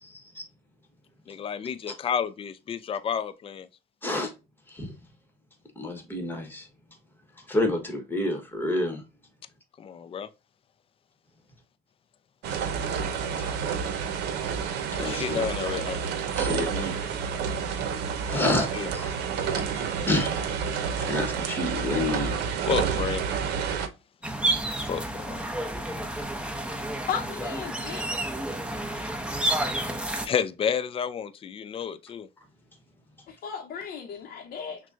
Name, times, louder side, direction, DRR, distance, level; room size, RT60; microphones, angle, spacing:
voice 1, 0.0-0.4 4.0-4.3 4.7-4.9 5.8-6.7 7.5-9.0 15.0-15.4 16.3-17.0 18.3-18.7 18.9-19.1 19.7-20.3 21.1-22.4, left 1 dB, 10° left, 1.2 m, -29 dB
voice 2, 1.3-3.7 9.8-10.3 14.9-16.0 18.3-18.5 18.7-18.9 22.7-23.2 24.9-25.5 30.3-32.3, left 7 dB, 35° left, 0.4 m, -30 dB
sound 1, 12.4-23.9, right 7 dB, 80° right, 0.7 m, -29 dB
sound 2, 24.2-30.3, right 1 dB, 5° right, 0.8 m, -30 dB
voice 3, 27.1-28.3 33.3-34.8, left 7 dB, 65° left, 0.8 m, -35 dB
6.1 x 2.2 x 2.6 m
cardioid pair, 110°, 17 cm